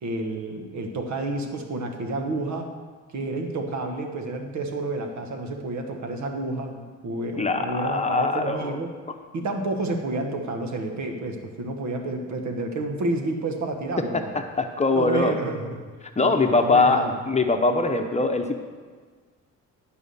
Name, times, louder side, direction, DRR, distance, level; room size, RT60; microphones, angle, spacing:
voice 1, 0.0-2.7 3.1-8.9 9.3-14.4 14.9-15.8 16.2-17.2, right 2 dB, 65° right, 4 dB, 1.5 m, -30 dB
voice 2, 7.4-8.8 14.1-15.4 16.2-18.6, left 3 dB, 20° left, 5 dB, 0.9 m, -22 dB
11.0 x 4.9 x 7.0 m, 1.5 s
cardioid pair, 90°, 30 cm